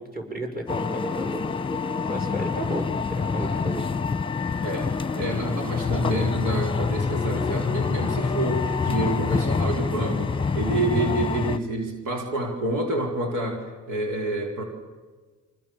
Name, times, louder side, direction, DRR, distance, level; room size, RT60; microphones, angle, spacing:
voice 1, 0.0-1.4 2.1-3.8, right 1 dB, 30° right, 2 dB, 6.7 m, -33 dB
sound 1, 0.7-11.6, left 5 dB, 15° left, 1.2 m, -26 dB
voice 2, 4.6-14.6, right 2 dB, 85° right, 2 dB, 4.5 m, -28 dB
29.5 x 25.5 x 7.2 m, 1.3 s
cardioid pair, 90°, 30 cm